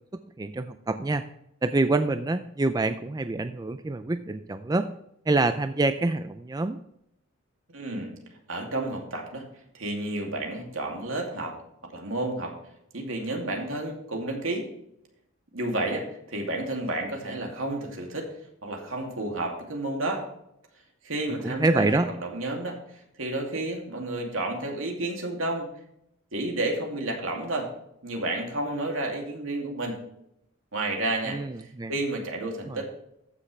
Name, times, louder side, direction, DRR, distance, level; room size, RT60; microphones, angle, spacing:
voice 1, 0.4-1.2 1.6-4.9 5.3-6.8 21.4-22.1 31.3-31.5 31.8-31.9 32.7-32.8, right 2 dB, 20° right, 10 dB, 0.3 m, -26 dB
voice 2, 7.7-8.1 8.5-9.5 9.7-11.5 11.9-12.5 12.9-14.7 15.5-18.3 18.6-20.2 21.0-21.9 22.2-22.8 23.2-25.7 26.3-27.7 28.0-30.0 30.7-32.9, right 2 dB, 80° right, 1 dB, 2.5 m, -31 dB
14.5 x 6.6 x 3.2 m, 0.78 s
head